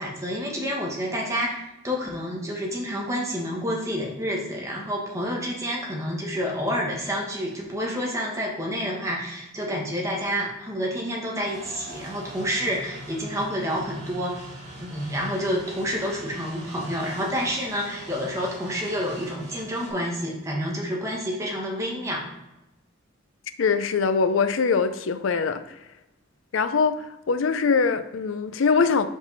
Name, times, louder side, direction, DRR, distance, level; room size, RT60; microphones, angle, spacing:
voice 1, 0.0-1.6 1.8-22.3, equal, 15° right, 1.3 m, -29 dB
sound 1, 11.5-19.9, right 1 dB, 35° right, 2.2 m, -42 dB
voice 2, 23.6-25.8 26.5-29.1, left 5 dB, 70° left, 0.5 m, -23 dB
5.2 x 5.1 x 4.0 m
head